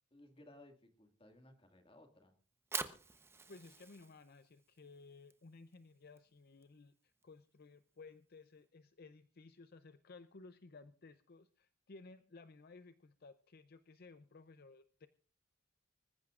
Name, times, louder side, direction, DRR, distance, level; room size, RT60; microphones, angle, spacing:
voice 1, 0.1-2.3, left 1 dB, 30° left, 5 dB, 2.0 m, -60 dB
Fire, 2.4-8.6, right 3 dB, 15° right, 0.9 m, -49 dB
voice 2, 3.5-15.1, left 3 dB, 55° left, 11 dB, 0.6 m, -57 dB
25.0 x 14.5 x 2.5 m, 0.39 s
head